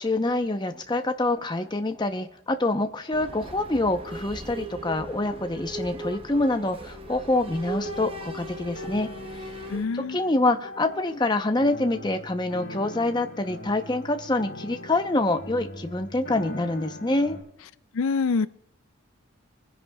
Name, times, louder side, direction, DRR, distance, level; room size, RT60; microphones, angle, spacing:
voice 1, 0.0-9.5 9.9-17.4, left 2 dB, 20° left, 7 dB, 0.7 m, -26 dB
sound 1, 3.1-9.9, right 2 dB, 25° right, 0.7 m, -38 dB
sound 2, 7.8-17.4, left 1 dB, 50° left, 3.8 m, -41 dB
voice 2, 9.7-10.2 17.9-18.5, left 4 dB, 70° left, 14 dB, 0.4 m, -25 dB
25.0 x 10.0 x 2.3 m, 0.76 s
head